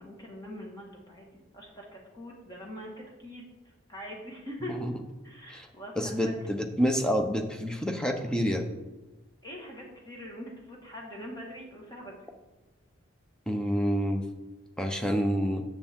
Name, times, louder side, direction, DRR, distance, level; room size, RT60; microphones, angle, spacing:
voice 1, 0.0-3.4 3.9-4.8 5.2-6.4 9.4-12.2, equal, 20° left, -2 dB, 1.6 m, -43 dB
voice 2, 6.0-8.6 13.5-14.2 14.8-15.6, equal, 5° left, 4 dB, 0.7 m, -28 dB
9.5 x 7.2 x 3.6 m, 1.2 s
head